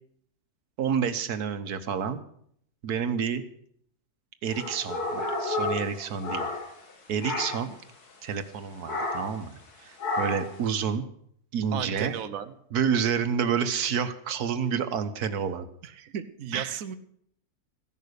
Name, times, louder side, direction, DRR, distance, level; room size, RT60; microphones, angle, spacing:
voice 1, 0.8-2.2 2.8-3.4 4.4-6.5 7.1-7.8 8.2-9.5 9.8-11.0 11.5-12.1 12.7-15.7 16.5-16.8, right 7 dB, 90° right, 10 dB, 1.5 m, -29 dB
sound 1, 4.5-6.9 7.2-7.8 8.9-9.4 10.0-10.6, left 2 dB, 85° left, 2.4 m, -31 dB
voice 2, 11.7-12.5 14.7-14.8 15.8-16.9, right 8 dB, 65° right, 9 dB, 1.3 m, -35 dB
14.5 x 11.0 x 6.7 m, 0.67 s
omnidirectional pair, 1.6 m